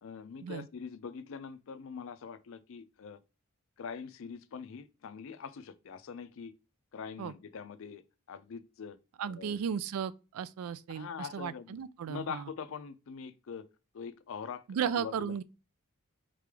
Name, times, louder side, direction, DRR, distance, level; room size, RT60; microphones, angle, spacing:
voice 1, 0.0-3.2 3.8-6.5 6.9-9.0 9.3-9.6 10.9-11.8 12.1-13.6 13.9-15.3, left 6 dB, 65° left, 0.4 m, -43 dB
voice 2, 9.2-12.4 14.7-15.4, right 7 dB, 90° right, 0.3 m, -35 dB
3.7 x 3.3 x 3.4 m
head